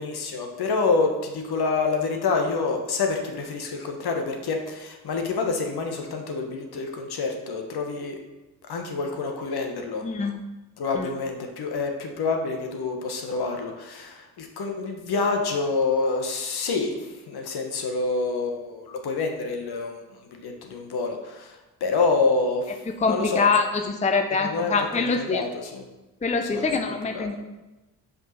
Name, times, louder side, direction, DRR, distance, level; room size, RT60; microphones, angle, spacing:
voice 1, 0.0-8.2 8.7-10.0 10.8-17.0 17.3-23.4 24.4-25.8 26.4-26.7 27.0-27.4, left 4 dB, 60° left, 3 dB, 1.4 m, -27 dB
voice 2, 10.0-10.5 11.0-11.1 22.9-25.4 26.2-27.4, left 4 dB, 15° left, 6 dB, 0.6 m, -24 dB
5.5 x 5.2 x 5.7 m, 1.1 s
hypercardioid pair, 50°, 44 cm